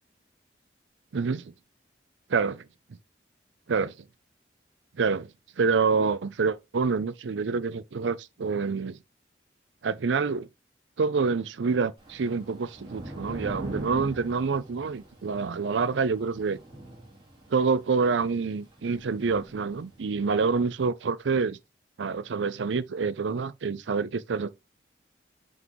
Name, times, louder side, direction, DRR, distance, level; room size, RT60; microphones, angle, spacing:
voice 1, 1.1-1.5 2.3-2.6 3.7-3.9 5.0-5.3 5.6-9.0 9.8-10.5 11.0-16.6 17.5-21.6 22.0-24.5, right 5 dB, 90° right, 0.5 m, -27 dB
Thunder / Rain, 12.0-20.3, right 1 dB, 25° right, 3.2 m, -43 dB
6.0 x 5.4 x 3.1 m
head